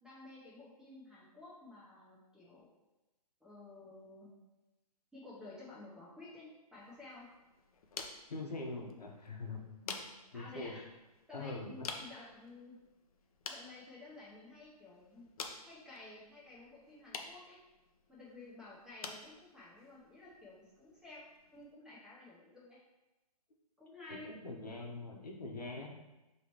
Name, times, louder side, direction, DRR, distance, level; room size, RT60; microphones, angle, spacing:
voice 1, 0.0-2.7 3.4-4.3 5.1-6.5 6.7-7.3 10.3-10.8 11.3-12.8 13.5-15.3 15.6-17.6 18.1-21.2 21.5-22.8 23.8-24.3, left 2 dB, 5° right, -7 dB, 0.7 m, -52 dB
sound 1, 6.7-21.8, left 5 dB, 65° left, 0.6 m, -51 dB
voice 2, 8.3-10.0 10.3-10.8 11.3-11.9 24.1-25.9, left 2 dB, 90° left, 0 dB, 0.9 m, -43 dB
4.9 x 3.1 x 3.0 m, 1.0 s
hypercardioid pair, 135°, 20 cm